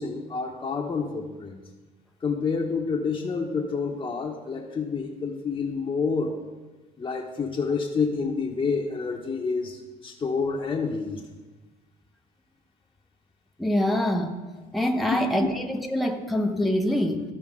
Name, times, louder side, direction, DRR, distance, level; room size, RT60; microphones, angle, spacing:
voice 1, 0.0-1.6 2.2-6.3 7.0-11.2 13.9-14.0 15.1-15.5, left 4 dB, 30° left, -3 dB, 1.1 m, -28 dB
voice 2, 13.6-14.3 14.7-17.2, left 1 dB, ahead, 2 dB, 0.8 m, -25 dB
15.0 x 5.0 x 3.7 m, 1.2 s
cardioid pair, 110°, 17 cm